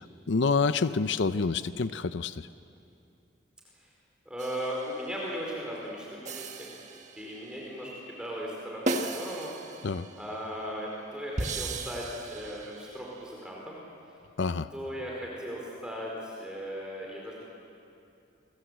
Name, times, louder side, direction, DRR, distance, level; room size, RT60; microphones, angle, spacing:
voice 1, 0.0-2.5 9.8-10.1 14.4-14.7, left 4 dB, 75° left, 13 dB, 0.6 m, -28 dB
voice 2, 4.2-6.7 7.2-9.5 10.2-13.8 14.7-17.4, equal, 5° right, -3 dB, 4.5 m, -37 dB
sound 1, 4.4-5.3 6.3-7.6 8.9-10.4 11.4-13.2, right 2 dB, 40° right, 1.7 m, -36 dB
29.0 x 22.5 x 8.1 m, 2.6 s
head